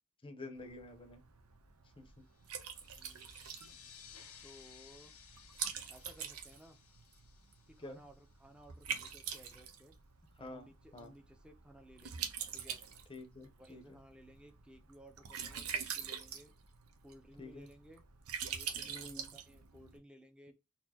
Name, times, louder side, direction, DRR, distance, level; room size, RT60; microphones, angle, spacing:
voice 1, 0.2-1.2 2.0-2.2 7.8-8.0 10.4-10.7 10.9-11.1 13.1-14.0 17.4-17.7 18.9-19.3, left 2 dB, 25° left, 0.8 m, -49 dB
Liquid, 0.6-20.0, right 7 dB, 75° right, 0.7 m, -45 dB
sound 1, 2.3-8.6, left 7 dB, 80° left, 1.0 m, -59 dB
voice 2, 2.9-3.9 4.4-5.1 5.9-6.8 7.7-10.0 10.4-12.8 13.6-16.5 17.0-18.0 18.5-20.5, equal, 5° right, 0.6 m, -59 dB
4.1 x 2.7 x 2.8 m
head